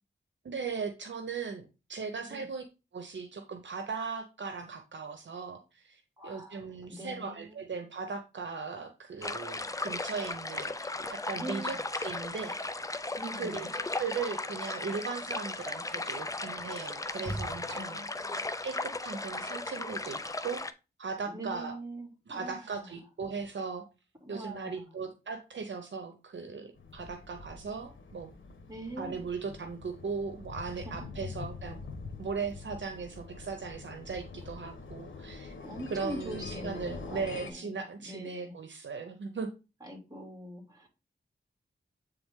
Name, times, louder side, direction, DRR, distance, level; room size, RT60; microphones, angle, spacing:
voice 1, 0.4-2.6 2.9-12.6 13.4-18.0 18.6-20.6 21.0-21.7 22.3-23.8 24.3-28.3 29.0-31.8 32.2-35.5 35.9-39.5, right 5 dB, 70° right, 6 dB, 0.9 m, -38 dB
voice 2, 6.2-7.6 11.3-11.8 13.2-13.6 17.7-18.4 21.3-22.9 24.2-24.9 28.7-29.3 30.8-30.9 31.2-31.3 35.6-38.5 39.8-40.9, right 1 dB, 20° right, 1 dB, 2.8 m, -43 dB
sound 1, 9.2-20.7, left 2 dB, 15° left, 0.5 m, -36 dB
sound 2, 17.2-18.2, right 1 dB, 55° left, 1.9 m, -39 dB
sound 3, 26.7-37.5, left 4 dB, 85° left, 1.2 m, -45 dB
8.6 x 3.5 x 3.7 m, 0.29 s
wide cardioid pair, 70°, 20 cm